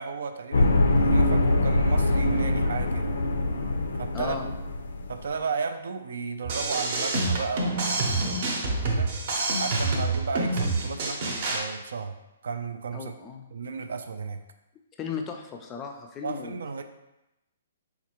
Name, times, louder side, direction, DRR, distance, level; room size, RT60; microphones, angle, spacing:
voice 1, 0.0-3.2 4.0-4.4 5.1-8.5 8.8-9.1 9.5-12.2 12.4-13.1 13.5-14.4 16.2-16.8, right 5 dB, 80° right, 8 dB, 0.3 m, -34 dB
sound 1, 0.5-5.3, left 2 dB, 85° left, 0.4 m, -23 dB
voice 2, 4.1-4.5 12.9-13.4 15.0-16.6, left 6 dB, 15° left, 3 dB, 0.3 m, -36 dB
sound 2, 6.4-11.6, right 2 dB, 45° right, 0.7 m, -27 dB
4.3 x 2.4 x 2.9 m, 0.94 s
hypercardioid pair, 160°, 0 cm